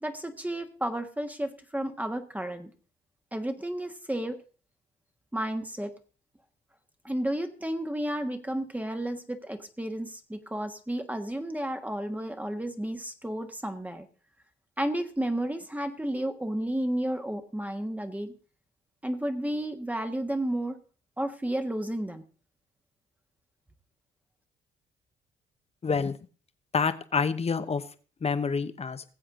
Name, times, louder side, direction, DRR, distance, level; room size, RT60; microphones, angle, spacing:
voice 1, 0.0-2.7 3.3-4.4 5.3-5.9 7.0-14.1 14.8-18.3 19.0-20.8 21.2-22.2, right 1 dB, 10° right, 6 dB, 1.3 m, -32 dB
voice 2, 25.8-26.1 26.7-27.8 28.2-29.0, left 5 dB, 30° left, 12 dB, 1.0 m, -27 dB
20.0 x 7.7 x 3.8 m, 0.39 s
cardioid pair, 90°, 20 cm